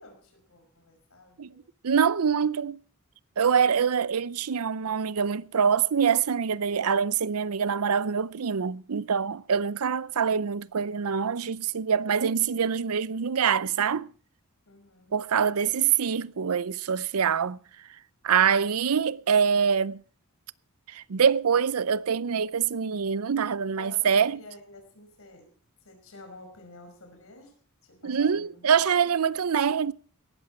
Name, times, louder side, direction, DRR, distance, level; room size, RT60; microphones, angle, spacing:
voice 1, 0.0-1.6 14.7-15.1 15.4-15.6 23.8-25.5 25.8-27.6 27.8-28.7 29.0-29.2, left 1 dB, 65° left, 5.3 m, -50 dB
voice 2, 1.8-2.8 3.4-14.1 15.1-17.6 18.2-20.0 20.9-24.4 28.0-29.9, right 7 dB, 85° right, 0.6 m, -25 dB
18.0 x 13.5 x 4.4 m
head